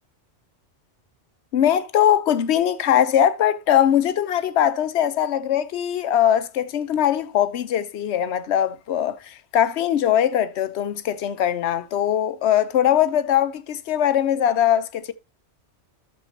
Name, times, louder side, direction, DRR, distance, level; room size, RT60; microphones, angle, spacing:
voice 1, 1.5-15.1, left 10 dB, 70° left, 1.0 m, -21 dB
12.0 x 6.7 x 2.7 m
omnidirectional pair, 1.2 m